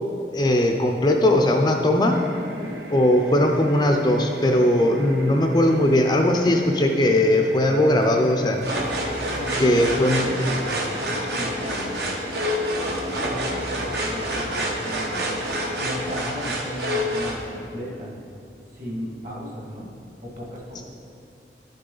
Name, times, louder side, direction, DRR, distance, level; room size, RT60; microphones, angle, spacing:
voice 1, 0.3-2.2 2.9-8.6 9.6-10.2 20.8-20.9, left 1 dB, 25° left, 3 dB, 0.5 m, -19 dB
sound 1, 2.1-16.2, equal, 90° right, 1.0 m, -37 dB
sound 2, 8.6-17.4, equal, 70° right, 1.2 m, -28 dB
voice 2, 9.2-12.2 13.0-15.3 15.7-18.2 18.7-19.9 20.2-20.8, left 1 dB, 45° right, -3 dB, 1.8 m, -35 dB
11.5 x 6.5 x 3.9 m, 2.6 s
head